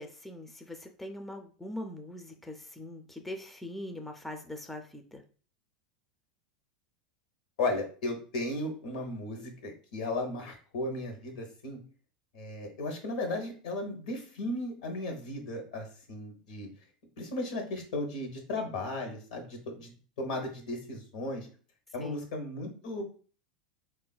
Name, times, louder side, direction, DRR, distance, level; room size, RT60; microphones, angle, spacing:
voice 1, 0.0-5.2 22.0-22.3, left 1 dB, 5° left, 5 dB, 0.3 m, -42 dB
voice 2, 7.6-11.8 12.3-16.7 17.2-21.5 21.9-23.0, left 2 dB, 75° left, 4 dB, 0.8 m, -35 dB
3.6 x 2.3 x 2.2 m, 0.40 s
hypercardioid pair, 95°, 4 cm